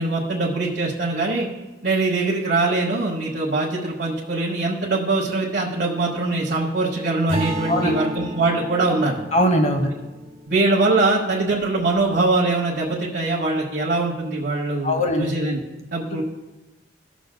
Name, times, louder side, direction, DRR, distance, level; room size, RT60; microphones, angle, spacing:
voice 1, 0.0-1.5 1.8-9.2 10.5-15.6 15.9-16.2, right 2 dB, 60° right, -4 dB, 1.2 m, -22 dB
Acoustic guitar / Strum, 7.3-11.5, right 1 dB, 40° right, 1.3 m, -32 dB
voice 2, 7.7-8.0 9.3-9.9 14.8-15.3, equal, 40° left, 5 dB, 1.0 m, -20 dB
16.0 x 6.2 x 2.2 m, 1.1 s
head